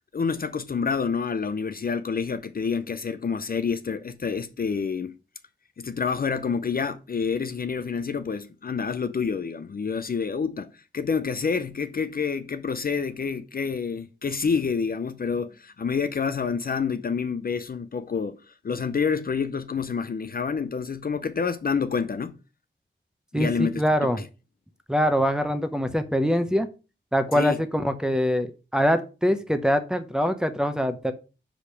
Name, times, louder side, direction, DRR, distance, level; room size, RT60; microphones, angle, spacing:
voice 1, 0.1-5.2 5.8-18.4 18.6-22.4 23.3-24.1 27.3-27.6, left 5 dB, 50° left, 0.5 m, -28 dB
voice 2, 23.3-24.2 24.9-26.7 27.1-31.1, equal, 5° right, 0.8 m, -24 dB
5.1 x 4.9 x 5.6 m
wide cardioid pair, 120°, 20 cm